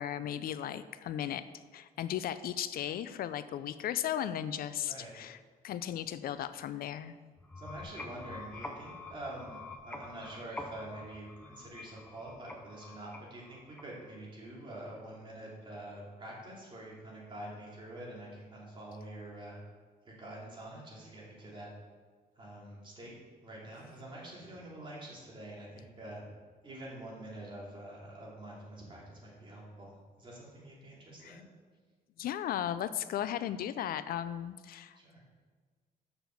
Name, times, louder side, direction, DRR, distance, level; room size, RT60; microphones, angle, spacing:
voice 1, 0.0-1.4 1.7-5.4 5.6-7.2 31.2-31.4 32.2-35.0, left 10 dB, 70° left, 13 dB, 0.4 m, -36 dB
sound 1, 7.4-14.2, left 2 dB, 10° left, 0.7 m, -47 dB
voice 2, 7.6-19.6 20.0-21.7 22.3-23.1 23.4-26.2 26.6-31.4 34.9-35.2, right 1 dB, 30° right, -4 dB, 2.6 m, -46 dB
6.9 x 6.0 x 6.9 m, 1.5 s
wide cardioid pair, 170°, 16 cm